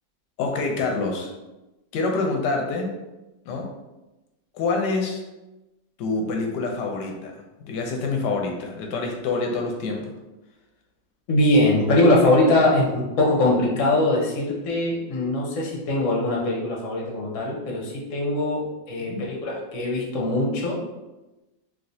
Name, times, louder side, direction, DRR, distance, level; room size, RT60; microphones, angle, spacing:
voice 1, 0.4-1.3 1.9-2.9 3.5-3.7 4.5-5.2 6.0-7.3 7.6-10.1 19.0-19.3, left 3 dB, 75° left, 1 dB, 1.1 m, -26 dB
voice 2, 11.3-20.8, left 1 dB, 55° left, -2 dB, 0.9 m, -22 dB
3.2 x 2.8 x 2.6 m, 1.0 s
omnidirectional pair, 2.0 m